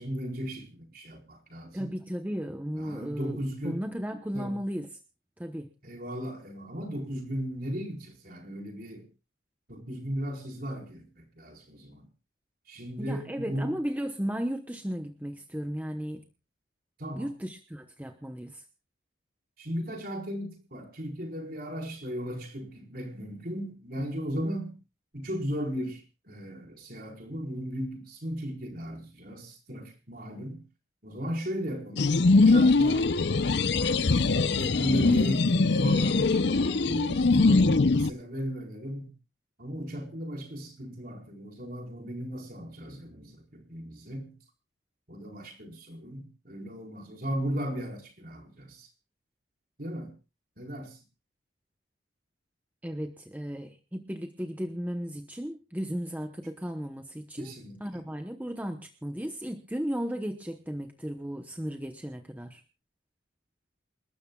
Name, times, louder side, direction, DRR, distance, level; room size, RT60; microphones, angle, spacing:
voice 1, 0.0-1.9 2.7-3.8 4.3-4.6 5.8-9.1 9.7-12.1 12.7-13.8 17.0-17.3 19.6-24.8 25.1-30.6 31.0-33.1 33.7-39.1 39.6-44.4 45.1-48.9 49.8-50.1 50.6-51.0 57.4-57.8, equal, 45° right, 2 dB, 4.4 m, -36 dB
voice 2, 1.7-4.9 5.4-5.7 13.0-16.2 17.2-18.6 52.8-57.5 57.8-62.6, equal, 10° right, 5 dB, 0.9 m, -35 dB
sound 1, 32.0-38.1, left 3 dB, 60° left, 0.6 m, -22 dB
28.0 x 13.0 x 2.3 m, 0.31 s
head